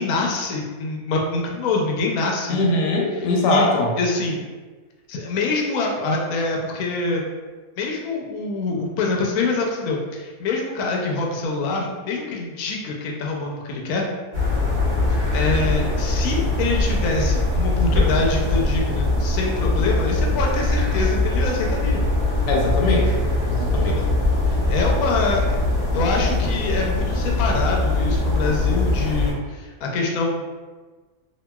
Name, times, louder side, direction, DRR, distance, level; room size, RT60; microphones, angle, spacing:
voice 1, 0.0-2.6 3.5-3.7 4.0-4.4 5.1-7.2 7.8-14.1 15.1-22.0 23.9-24.1 24.5-25.6 25.9-30.6, left 3 dB, 70° left, -1 dB, 0.9 m, -25 dB
voice 2, 2.5-3.9 22.5-23.2 23.5-24.0, left 2 dB, 90° left, -1 dB, 1.2 m, -21 dB
sound 1, 14.3-29.3, left 2 dB, 40° right, 1.1 m, -21 dB
2.8 x 2.5 x 2.2 m, 1.4 s
omnidirectional pair, 1.7 m